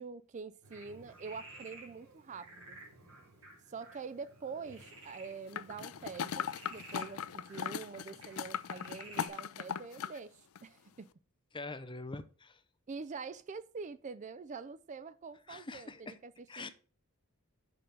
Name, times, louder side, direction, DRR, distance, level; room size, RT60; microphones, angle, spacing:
voice 1, 0.0-2.8 3.7-11.1 12.9-16.3 16.6-16.7, right 5 dB, 35° right, 0.4 m, -45 dB
Frog, 0.6-9.3, right 2 dB, 75° right, 4.0 m, -54 dB
sound 1, 5.5-10.2 10.6-10.7, left 7 dB, 75° left, 0.5 m, -39 dB
voice 2, 11.5-12.6 15.5-16.2 16.5-16.7, left 3 dB, 20° left, 0.7 m, -44 dB
6.8 x 5.3 x 6.3 m
head